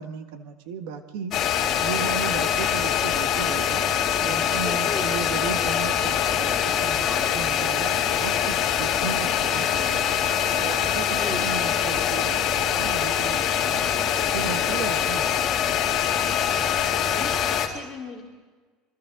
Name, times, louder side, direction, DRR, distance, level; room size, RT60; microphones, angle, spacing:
voice 1, 0.0-1.4 1.8-3.8 4.2-10.0 10.5-13.9 14.3-15.5, right 6 dB, 75° right, 7 dB, 1.7 m, -35 dB
sound 1, 1.3-17.7, left 9 dB, 35° left, 2.7 m, -24 dB
voice 2, 4.5-5.1 7.0-7.3 8.9-9.3 11.1-11.5 17.1-18.2, left 4 dB, 10° left, -4 dB, 2.9 m, -37 dB
26.5 x 25.0 x 3.9 m, 1.4 s
cardioid pair, 150°, 0 cm